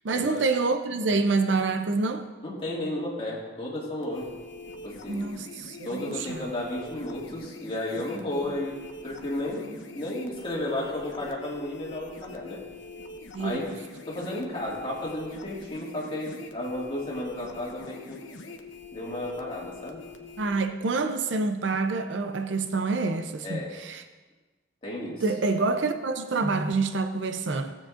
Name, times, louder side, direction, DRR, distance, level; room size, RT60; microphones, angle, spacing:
voice 1, 0.0-2.3 5.1-6.5 13.3-13.6 20.4-24.0 25.2-27.8, right 3 dB, 75° right, 0.5 m, -27 dB
voice 2, 2.4-4.4 4.8-5.3 5.8-8.8 9.0-12.6 13.4-13.6 14.0-18.3 18.9-20.0 23.4-23.7 24.8-25.2, left 1 dB, 30° left, 2.0 m, -33 dB
sound 1, 4.0-20.7, left 2 dB, 85° left, 0.9 m, -44 dB
16.5 x 7.5 x 2.5 m
head